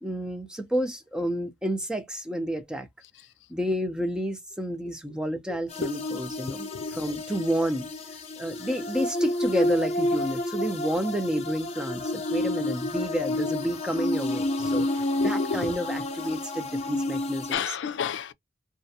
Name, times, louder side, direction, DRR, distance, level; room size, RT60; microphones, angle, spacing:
voice 1, 0.0-2.9 3.5-7.9 8.4-14.9 15.2-17.6, equal, 5° right, 0.4 m, -30 dB
sound 1, 5.7-17.5, left 1 dB, 35° left, 0.6 m, -30 dB
voice 2, 15.2-15.7 17.5-18.3, left 6 dB, 85° left, 0.4 m, -31 dB
2.3 x 2.1 x 2.7 m
head